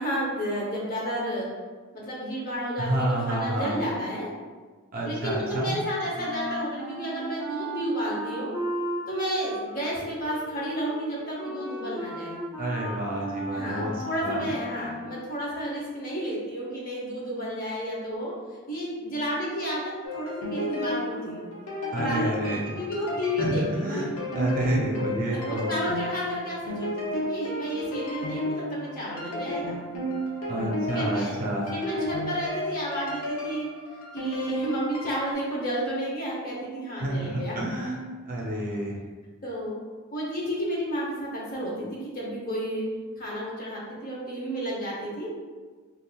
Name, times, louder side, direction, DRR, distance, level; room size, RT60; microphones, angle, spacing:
voice 1, 0.0-1.5 1.9-4.3 5.0-8.5 9.1-12.4 13.5-18.3 18.7-21.4 21.9-24.1 24.9-29.8 30.9-31.4 31.7-33.7 34.1-37.5 39.4-39.8 40.1-42.8 43.2-45.3, equal, 40° left, -4 dB, 0.7 m, -31 dB
voice 2, 2.8-3.7 4.9-5.7 12.6-13.9 14.2-14.5 21.9-22.8 23.4-24.1 24.3-25.7 30.5-31.7 37.0-38.0 38.2-39.0, right 1 dB, 40° right, -3 dB, 0.5 m, -29 dB
Wind instrument woodwind instrument, 6.1-15.2, right 1 dB, 10° right, 0.8 m, -35 dB
sound 1, 20.0-35.3, equal, 90° left, 0.7 m, -33 dB
3.5 x 2.4 x 2.2 m, 1.4 s
head